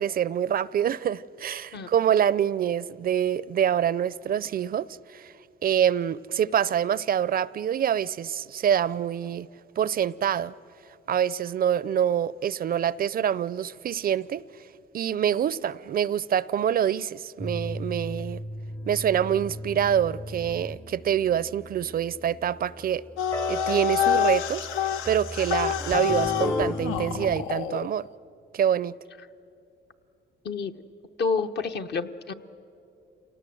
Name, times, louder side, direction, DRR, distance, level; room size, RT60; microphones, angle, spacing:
voice 1, 0.0-5.3 5.6-9.5 9.8-10.5 11.1-14.4 14.9-18.4 18.9-23.0 23.5-28.1 28.5-28.9, right 9 dB, 50° right, 20 dB, 0.4 m, -26 dB
sound 1, 17.4-27.5, left 1 dB, 10° left, 0.5 m, -35 dB
sound 2, 23.2-27.9, left 10 dB, 85° left, 0.6 m, -27 dB
voice 2, 31.2-32.3, left 4 dB, 55° left, 8 dB, 0.9 m, -28 dB
27.0 x 18.0 x 7.7 m, 2.7 s
cardioid pair, 90°, 20 cm